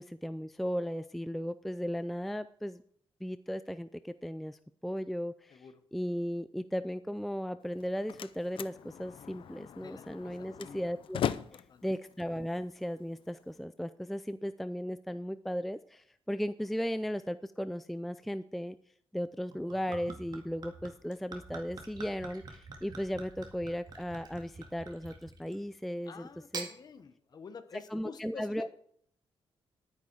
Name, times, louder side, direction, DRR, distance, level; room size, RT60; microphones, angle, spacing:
voice 1, 0.0-2.8 3.2-11.2 11.8-18.8 19.1-26.7 27.9-28.7, equal, ahead, 12 dB, 0.3 m, -36 dB
Slam, 7.6-13.6, left 9 dB, 60° left, 0.6 m, -40 dB
voice 2, 9.8-10.3 10.6-10.8 11.5-11.8 26.1-28.7, left 5 dB, 45° left, 10 dB, 1.1 m, -49 dB
Gurgling / Chink clink / Liquid, 19.5-25.7 26.3-26.7, right 4 dB, 45° right, 2.0 m, -46 dB
11.0 x 9.7 x 4.6 m, 0.63 s
wide cardioid pair, 155°, 10 cm